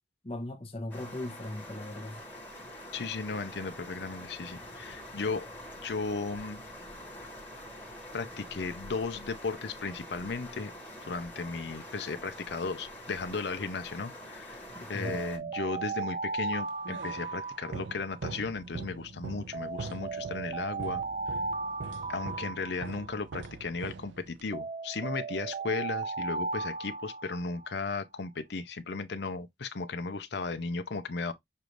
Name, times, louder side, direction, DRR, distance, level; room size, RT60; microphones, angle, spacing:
voice 1, 0.2-2.2 14.7-15.2, left 1 dB, 30° left, 0.9 m, -38 dB
sound 1, 0.9-15.4, left 1 dB, 10° left, 1.4 m, -46 dB
voice 2, 2.9-5.5 5.8-6.6 8.1-10.7 11.0-21.0 22.1-31.3, left 4 dB, 65° left, 0.6 m, -35 dB
Alarm, 15.0-18.4 19.5-23.4 24.5-27.8, right 4 dB, 30° right, 0.4 m, -36 dB
sound 2, 16.4-24.6, right 4 dB, 80° right, 0.5 m, -43 dB
6.7 x 2.6 x 3.0 m
head